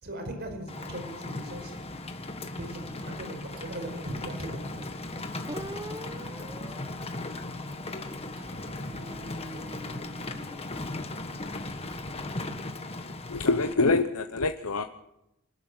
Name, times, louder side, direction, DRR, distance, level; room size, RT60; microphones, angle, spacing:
voice 1, 0.0-1.7 2.5-4.9, right 1 dB, 45° right, 5 dB, 4.9 m, -39 dB
Rain, 0.7-13.7, left 2 dB, 25° left, 1.6 m, -37 dB
Singing, 2.2-12.5, right 1 dB, 70° right, 4.4 m, -55 dB
sound 1, 5.5-8.2 8.7-11.2, right 1 dB, 20° right, 1.0 m, -45 dB
voice 2, 13.3-14.8, left 3 dB, 75° left, 7 dB, 1.0 m, -25 dB
25.5 x 13.0 x 9.6 m, 0.86 s
head